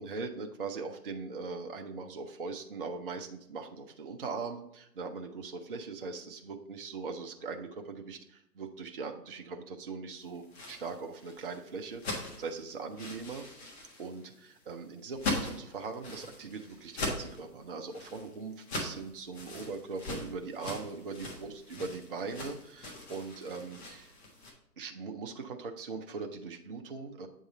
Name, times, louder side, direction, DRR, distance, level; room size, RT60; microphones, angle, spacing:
voice 1, 0.0-13.4 14.0-24.1 24.8-27.3, right 4 dB, 35° right, 4 dB, 0.5 m, -40 dB
sound 1, 10.3-24.5, left 2 dB, 40° left, 1.5 m, -41 dB
8.0 x 3.6 x 4.0 m, 0.77 s
figure-of-eight pair, 135°, 49 cm